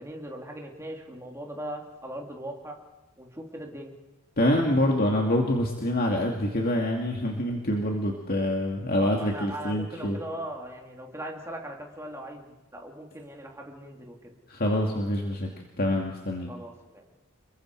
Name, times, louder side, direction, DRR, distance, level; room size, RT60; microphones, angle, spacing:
voice 1, 0.0-2.8 3.2-3.9 9.1-14.3 16.5-17.0, right 1 dB, 15° right, 0 dB, 3.1 m, -39 dB
voice 2, 4.4-10.2 14.5-15.5 15.8-16.5, left 1 dB, 45° left, 0 dB, 2.4 m, -26 dB
28.5 x 22.5 x 4.8 m, 1.1 s
head